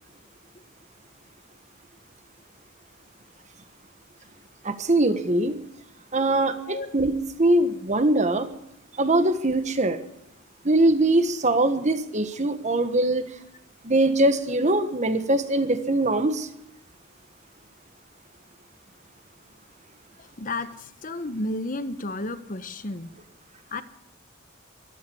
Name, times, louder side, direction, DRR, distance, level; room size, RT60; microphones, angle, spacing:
voice 1, 4.6-5.6 6.1-8.5 9.0-10.0 10.6-13.2 13.8-16.5, right 2 dB, 35° right, 10 dB, 1.4 m, -22 dB
voice 2, 20.2-23.1 23.7-23.8, left 2 dB, 40° left, 12 dB, 1.0 m, -32 dB
16.0 x 13.0 x 7.0 m, 0.77 s
head